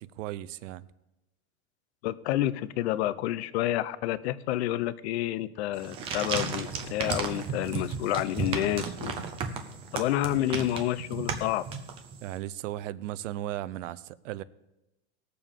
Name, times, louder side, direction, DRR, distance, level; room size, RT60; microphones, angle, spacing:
voice 1, 0.2-0.9 12.2-14.4, right 13 dB, 75° right, 0.7 m, -36 dB
voice 2, 2.0-9.2 9.9-11.6, left 13 dB, 60° left, 0.7 m, -29 dB
sound 1, 5.7-12.3, right 5 dB, 15° right, 0.5 m, -34 dB
19.5 x 6.9 x 3.7 m
supercardioid pair, 180°, 37 cm